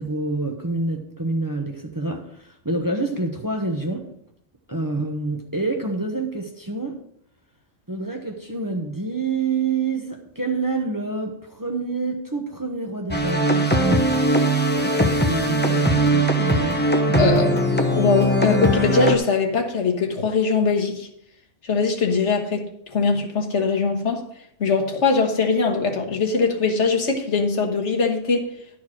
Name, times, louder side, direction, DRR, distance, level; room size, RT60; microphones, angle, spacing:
voice 1, 0.0-4.0 4.7-7.0 7.9-14.1 14.8-16.9, right 3 dB, 20° right, 2 dB, 0.9 m, -27 dB
sound 1, 13.1-19.2, right 1 dB, 10° left, 0.8 m, -20 dB
voice 2, 17.2-17.6 18.0-21.1 21.6-22.6 22.9-24.2 24.6-28.5, left 4 dB, 70° left, 1 dB, 1.6 m, -21 dB
11.5 x 4.6 x 6.1 m, 0.71 s
omnidirectional pair, 1.2 m